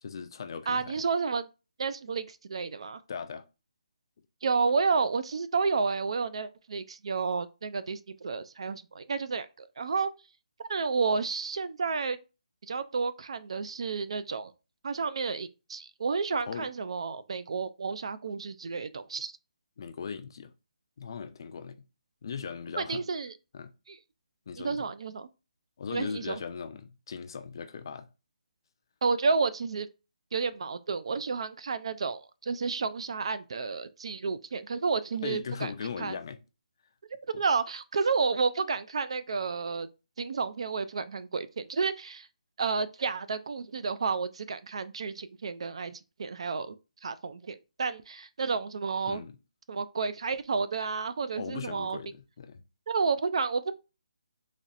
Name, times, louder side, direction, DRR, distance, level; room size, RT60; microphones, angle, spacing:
voice 1, 0.0-1.0 3.1-3.4 16.4-16.7 19.8-20.5 21.0-21.8 22.2-23.0 23.5-23.7 24.5-24.9 25.8-28.1 35.2-36.4 37.3-37.4 49.1-49.3 51.4-52.6, left 6 dB, 35° left, 0.4 m, -38 dB
voice 2, 0.7-1.4 1.8-3.0 4.4-10.1 10.6-12.2 12.7-14.5 14.8-19.3 22.8-23.3 23.9-24.0 24.6-25.3 25.9-26.4 29.0-29.9 30.3-35.7 36.0-36.2 37.4-39.9 40.2-42.3 42.6-46.7 47.0-49.2 49.7-52.0 52.9-53.7, right 4 dB, 45° right, 0.3 m, -31 dB
4.1 x 3.0 x 2.5 m
hypercardioid pair, 175°, 4 cm